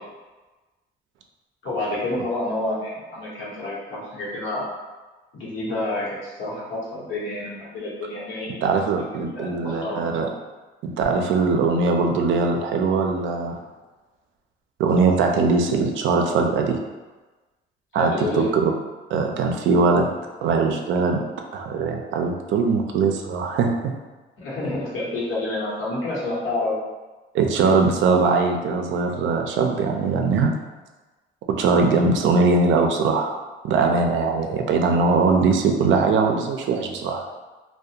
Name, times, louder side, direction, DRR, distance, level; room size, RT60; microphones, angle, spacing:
voice 1, 1.6-4.7 5.3-9.0 9.3-10.2 17.9-18.5 24.4-26.8, left 2 dB, 85° left, -7 dB, 0.9 m, -29 dB
voice 2, 8.6-10.3 11.0-13.6 14.8-16.8 17.9-18.7 19.1-20.1 20.4-21.2 21.5-24.0 27.3-30.6 31.5-37.2, right 4 dB, 80° right, 3 dB, 0.4 m, -21 dB
2.4 x 2.1 x 2.7 m, 1.2 s
cardioid pair, 90°, 20 cm